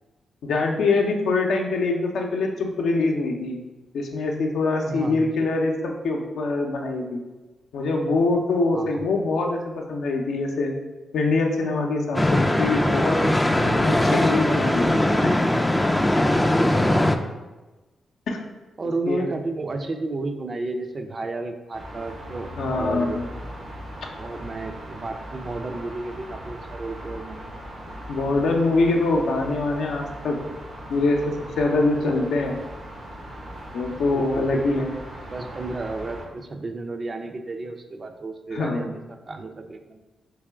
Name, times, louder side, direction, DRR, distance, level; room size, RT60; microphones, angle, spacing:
voice 1, 0.4-3.6 3.9-7.2 7.7-10.7 11.1-13.2 13.5-14.9 15.2-15.3 18.3-18.4 19.1-19.3 22.6-23.3 28.1-30.4 30.9-32.6 33.7-34.9 38.5-38.9, left 3 dB, 75° left, 1 dB, 0.5 m, -24 dB
voice 2, 4.9-5.5 8.7-9.0 16.8-17.3 18.8-23.2 24.2-27.6 34.1-34.9 35.3-40.1, right 2 dB, 45° right, 5 dB, 0.4 m, -32 dB
sound 1, 12.1-17.2, left 1 dB, 15° left, 0.3 m, -20 dB
sound 2, 21.7-36.2, equal, 85° right, 1.0 m, -39 dB
3.4 x 2.9 x 3.4 m, 1.2 s
supercardioid pair, 45°, 0 cm